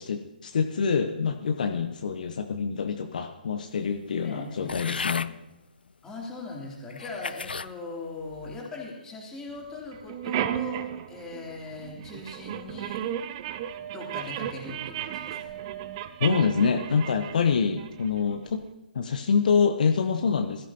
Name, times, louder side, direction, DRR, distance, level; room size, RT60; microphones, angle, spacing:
voice 1, 0.0-5.3 16.2-18.7 18.9-20.7, left 6 dB, 55° left, 6 dB, 0.9 m, -26 dB
voice 2, 4.2-5.0 6.0-13.0 13.8-15.5, left 3 dB, 10° left, -3 dB, 3.1 m, -40 dB
sound 1, 4.7-5.3 6.1-6.2 6.9-7.7 8.3-8.7, left 4 dB, 75° left, 0.4 m, -34 dB
sound 2, 9.6-9.7 9.9-18.6, right 10 dB, 30° right, 0.6 m, -34 dB
21.0 x 13.5 x 2.9 m, 0.96 s
figure-of-eight pair, 140°, 5 cm